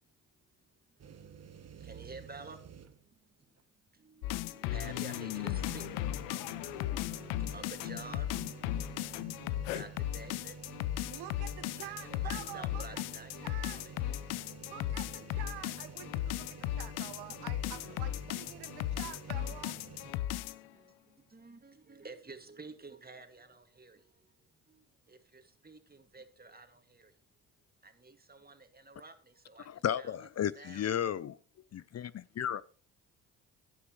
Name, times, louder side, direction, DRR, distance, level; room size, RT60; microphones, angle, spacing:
voice 1, 0.6-10.6 11.8-14.2 16.3-16.8 17.3-17.4 17.9-18.0 18.3-19.0 20.1-27.1 27.8-30.3 30.5-30.9 31.8-31.9, right 3 dB, 25° right, 2.3 m, -52 dB
sound 1, 1.0-3.2 3.6-3.7 4.8-20.1, right 6 dB, 40° right, 1.3 m, -50 dB
sound 2, 4.2-20.7, left 14 dB, 85° left, 0.7 m, -36 dB
voice 2, 11.1-13.9 14.6-19.7, right 11 dB, 75° right, 1.2 m, -47 dB
voice 3, 29.7-31.4 31.7-32.6, left 9 dB, 45° left, 0.6 m, -34 dB
15.5 x 9.7 x 3.2 m
supercardioid pair, 55°, 38 cm